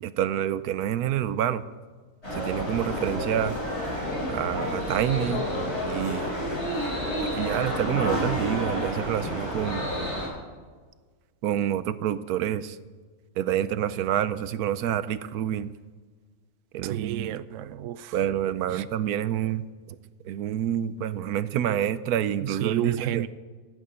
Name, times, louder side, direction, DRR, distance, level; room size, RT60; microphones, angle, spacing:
voice 1, 0.0-1.6 2.4-3.6 4.3-5.4 5.9-6.3 7.3-9.9 11.4-12.8 13.4-15.7 16.7-17.3 18.1-20.0 20.2-23.2, right 10 dB, 85° right, 1.2 m, -27 dB
sound 1, 2.2-10.3, equal, 45° left, 6.3 m, -30 dB
voice 2, 16.8-18.2 18.7-18.9 21.7-21.8 22.4-23.3, right 11 dB, 65° right, 0.8 m, -31 dB
15.0 x 8.6 x 8.7 m
omnidirectional pair, 1.6 m